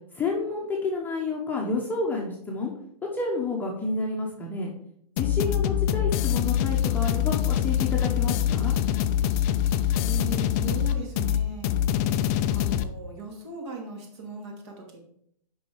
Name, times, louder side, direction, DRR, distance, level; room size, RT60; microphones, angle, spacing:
voice 1, 0.1-2.7 3.1-4.7 5.2-8.8, left 3 dB, 10° left, -2 dB, 1.0 m, -30 dB
sound 1, 5.2-12.8, left 11 dB, 25° left, 0.4 m, -24 dB
voice 2, 10.0-12.2 12.5-15.0, right 4 dB, 45° right, 1 dB, 2.4 m, -39 dB
6.8 x 5.4 x 4.8 m, 0.70 s
hypercardioid pair, 130°, 20 cm